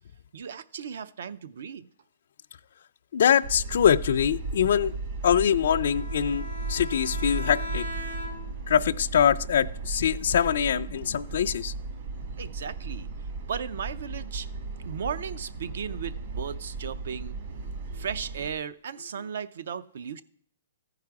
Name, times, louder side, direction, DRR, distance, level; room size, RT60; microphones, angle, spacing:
voice 1, 0.3-1.9 12.4-13.1 13.5-14.5 14.8-17.4 17.9-20.2, right 7 dB, 65° right, 0.5 m, -36 dB
voice 2, 3.1-4.9 5.2-7.8 8.7-11.7, left 8 dB, 60° left, 0.4 m, -23 dB
sound 1, 3.4-18.5, right 3 dB, 45° right, 1.4 m, -36 dB
Bowed string instrument, 5.7-8.7, left 1 dB, 85° right, 2.2 m, -39 dB
14.0 x 4.8 x 4.7 m
hypercardioid pair, 160°, 0 cm